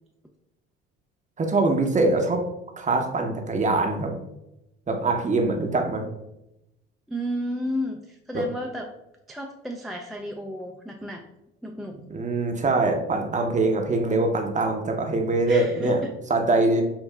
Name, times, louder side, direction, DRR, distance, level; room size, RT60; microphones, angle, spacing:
voice 1, 1.4-2.5 2.8-4.2 4.9-6.0 8.3-8.5 12.1-16.0 16.3-16.8, right 2 dB, 25° right, 4 dB, 0.6 m, -23 dB
voice 2, 7.1-8.9 9.3-11.2 11.6-12.0 15.5-16.1, equal, ahead, 0 dB, 0.3 m, -33 dB
5.4 x 2.3 x 2.3 m, 0.89 s
hypercardioid pair, 65°, 30 cm